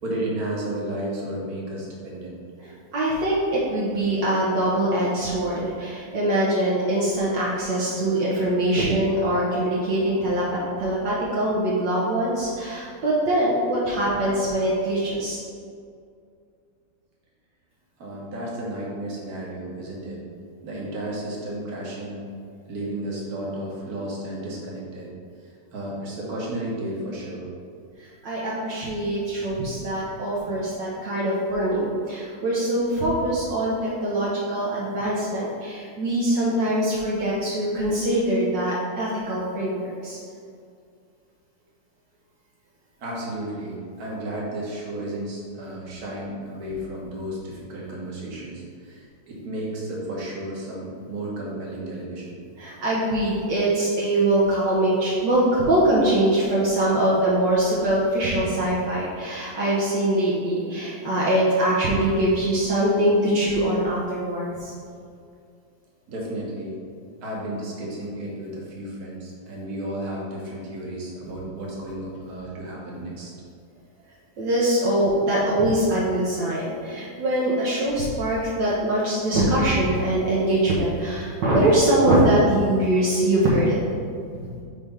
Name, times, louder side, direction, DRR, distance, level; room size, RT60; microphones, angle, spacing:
voice 1, 0.0-2.7 18.0-20.2 20.6-22.2 22.7-25.1 25.7-27.5 43.0-52.4 66.1-66.7 67.2-73.3, right 1 dB, 55° right, -4 dB, 1.8 m, -33 dB
voice 2, 2.6-15.4 28.2-40.2 52.6-64.7 74.4-83.8 84.4-84.6, right 1 dB, 70° right, -7 dB, 1.7 m, -23 dB
7.2 x 3.4 x 5.5 m, 2.3 s
omnidirectional pair, 2.0 m